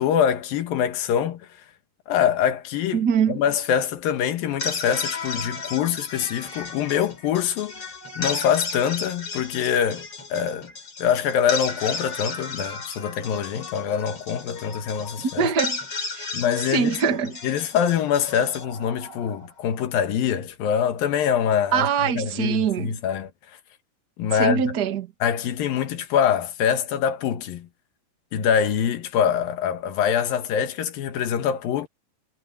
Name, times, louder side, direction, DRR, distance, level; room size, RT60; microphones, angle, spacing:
voice 1, 0.0-1.4 2.1-7.8 8.2-10.7 11.0-15.5 16.3-17.0 17.4-23.3 24.2-24.6 25.2-27.7 28.3-31.9, left 8 dB, 80° left, 3.3 m, -24 dB
voice 2, 2.9-3.4 15.2-15.8 16.1-16.3 16.7-17.3 21.7-22.9 24.3-25.1, right 7 dB, 40° right, 1.5 m, -23 dB
sound 1, 4.4-19.7, left 4 dB, 40° left, 5.6 m, -34 dB
omnidirectional pair, 4.0 m